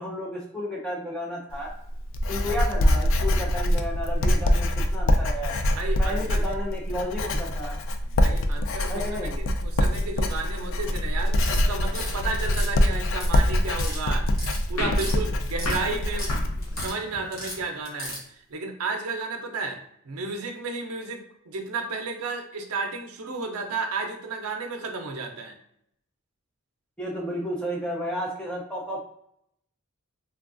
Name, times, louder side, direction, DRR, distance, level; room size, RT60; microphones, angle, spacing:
voice 1, 0.0-1.7 2.3-5.5 6.0-7.8 8.9-9.4 27.0-29.0, equal, 5° left, -3 dB, 0.6 m, -32 dB
Writing, 1.5-16.9, left 1 dB, 65° left, 0.3 m, -24 dB
voice 2, 5.7-6.4 8.2-14.3 14.7-16.3 16.7-25.5, right 3 dB, 85° right, 3 dB, 0.5 m, -33 dB
sound 1, 11.3-12.1 12.4-13.4 13.7-14.0 14.3-15.2 15.4-16.3 16.6-16.9 17.3-18.2, left 1 dB, 45° left, 1.2 m, -35 dB
sound 2, 14.8-17.7, left 2 dB, 80° left, 0.9 m, -35 dB
3.4 x 2.3 x 2.4 m, 0.73 s
head